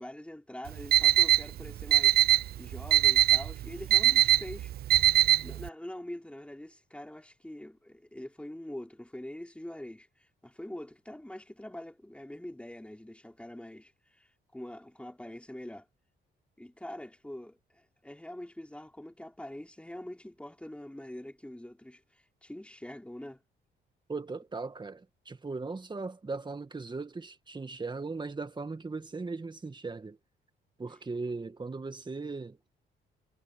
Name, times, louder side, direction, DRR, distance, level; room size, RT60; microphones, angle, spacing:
voice 1, 0.0-4.7 5.4-15.9 16.6-23.4, left 1 dB, 5° left, 4.1 m, -44 dB
Alarm, 0.7-5.7, right 13 dB, 50° right, 0.4 m, -23 dB
voice 2, 24.1-30.2 30.8-32.6, right 3 dB, 25° right, 2.0 m, -38 dB
cardioid pair, 90°, 20 cm